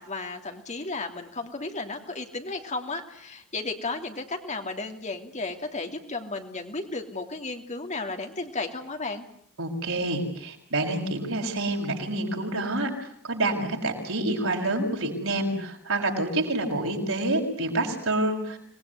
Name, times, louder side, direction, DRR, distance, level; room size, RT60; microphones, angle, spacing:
voice 1, 0.0-9.2, left 3 dB, 30° left, 5 dB, 2.9 m, -34 dB
voice 2, 9.6-18.6, right 2 dB, 60° right, 2 dB, 6.7 m, -28 dB
26.5 x 20.5 x 9.7 m, 0.66 s
head